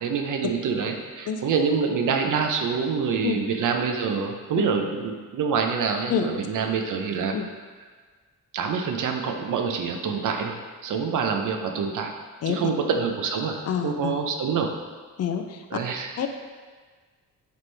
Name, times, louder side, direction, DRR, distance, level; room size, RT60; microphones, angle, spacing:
voice 1, 0.0-7.4 8.5-12.1 12.5-14.7 15.7-16.1, right 5 dB, 65° right, 4 dB, 0.7 m, -26 dB
voice 2, 13.6-14.1 15.2-15.8 16.2-16.3, left 7 dB, 50° left, 6 dB, 0.4 m, -27 dB
9.4 x 3.2 x 3.3 m, 1.5 s
wide cardioid pair, 165°, 33 cm